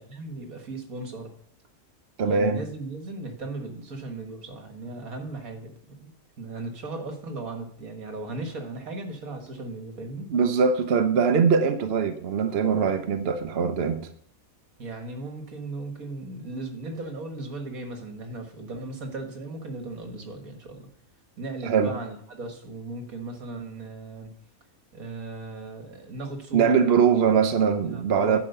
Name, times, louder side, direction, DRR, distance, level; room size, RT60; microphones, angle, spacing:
voice 1, 0.0-1.3 2.2-6.1 6.4-10.3 12.8-12.9 14.8-20.9 21.4-24.3 24.9-27.4 27.8-28.4, right 2 dB, 65° right, 2.1 m, -37 dB
voice 2, 2.2-2.6 10.3-14.1 21.6-21.9 26.5-28.4, right 6 dB, 50° right, 0.9 m, -22 dB
11.0 x 5.0 x 6.8 m
omnidirectional pair, 1.6 m